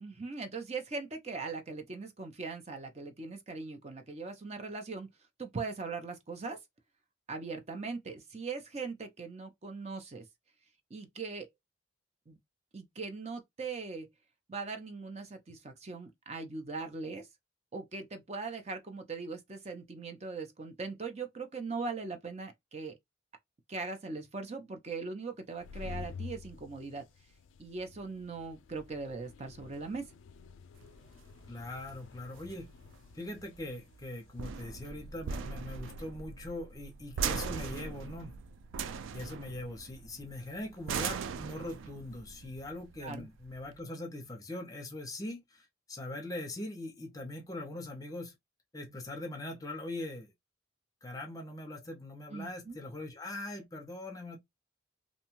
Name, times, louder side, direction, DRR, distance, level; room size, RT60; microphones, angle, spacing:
voice 1, 0.0-5.1 5.4-6.6 7.3-10.2 10.9-11.5 12.3-12.4 12.7-14.1 14.5-17.3 17.7-23.0 23.7-27.0 27.6-30.1 43.0-43.3 52.3-52.8, right 4 dB, 35° right, 0.6 m, -40 dB
sound 1, 25.4-35.9, left 5 dB, 85° left, 0.3 m, -50 dB
sound 2, 30.8-43.8, right 6 dB, 85° right, 0.3 m, -40 dB
voice 2, 31.5-32.7 33.1-38.4 39.1-48.3 48.7-50.3 51.0-54.4, left 1 dB, 20° left, 0.7 m, -41 dB
2.6 x 2.3 x 3.0 m
head